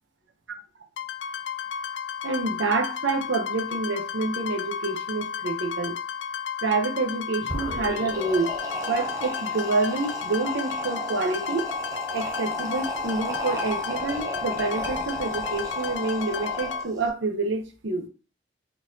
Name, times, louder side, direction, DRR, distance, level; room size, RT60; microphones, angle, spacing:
sound 1, 1.0-16.8, left 7 dB, 70° left, 0.3 m, -33 dB
voice 1, 2.2-6.0 6.6-8.5 8.9-11.6 12.1-18.1, right 3 dB, 75° right, 0.8 m, -27 dB
sound 2, 7.4-17.1, right 1 dB, 15° right, 0.6 m, -34 dB
3.9 x 3.7 x 2.7 m
head